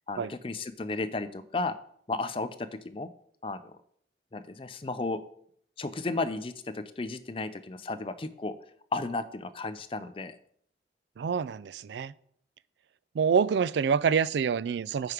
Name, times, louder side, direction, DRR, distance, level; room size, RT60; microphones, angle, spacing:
voice 1, 0.1-1.7 2.1-3.1 3.4-3.6 4.3-5.2 5.8-8.5 8.9-10.3, left 3 dB, 30° left, 0.5 m, -34 dB
voice 2, 11.2-12.1 13.1-15.1, right 6 dB, 75° right, 0.3 m, -26 dB
9.1 x 4.9 x 5.0 m
head